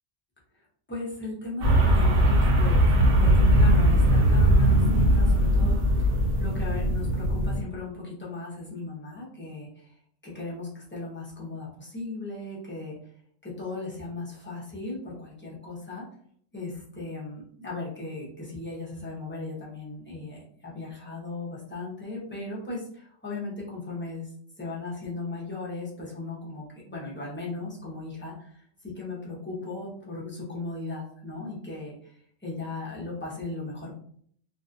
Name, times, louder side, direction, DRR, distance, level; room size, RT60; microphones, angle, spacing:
voice 1, 0.9-2.9 3.2-6.1 6.4-9.9 10.2-12.9 13.4-16.0 16.5-24.3 24.6-32.1 32.4-33.9, left 3 dB, 10° left, -6 dB, 0.5 m, -37 dB
sound 1, 1.6-7.6, equal, 65° right, 0.9 m, -20 dB
2.6 x 2.4 x 2.5 m, 0.62 s
omnidirectional pair, 1.3 m